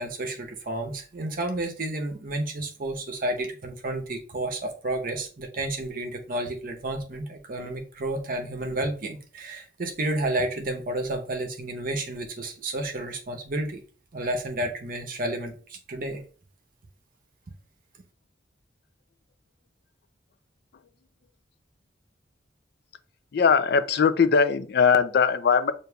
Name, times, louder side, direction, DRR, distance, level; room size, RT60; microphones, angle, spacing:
voice 1, 0.0-13.8 14.1-16.2, right 1 dB, 50° right, 0.8 m, -31 dB
voice 2, 23.3-25.7, left 6 dB, 60° left, 0.4 m, -20 dB
6.5 x 2.6 x 2.3 m
head